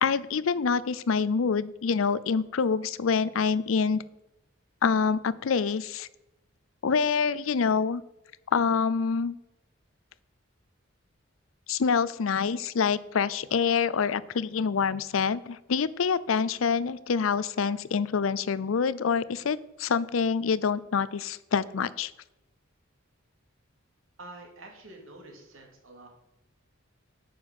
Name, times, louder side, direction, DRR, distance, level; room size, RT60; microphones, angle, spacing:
voice 1, 0.0-4.0 4.8-6.1 6.8-8.0 8.5-9.4 11.7-22.1, left 5 dB, 85° left, 18 dB, 0.5 m, -26 dB
voice 2, 24.2-26.1, right 2 dB, 80° right, 2 dB, 2.7 m, -47 dB
9.3 x 6.2 x 7.4 m, 0.94 s
head